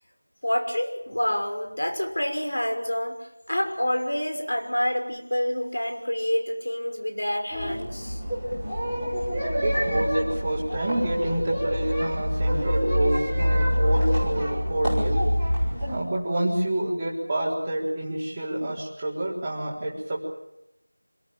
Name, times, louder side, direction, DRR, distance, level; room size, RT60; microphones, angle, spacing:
voice 1, 0.4-3.1 3.5-8.2, equal, 60° left, 4 dB, 6.0 m, -27 dB
sound 1, 7.5-16.0, equal, 5° left, 5.3 m, -26 dB
voice 2, 9.6-15.2 15.9-20.3, right 1 dB, 10° right, -7 dB, 4.1 m, -28 dB
27.0 x 18.0 x 9.0 m, 0.88 s
figure-of-eight pair, 175°, 0 cm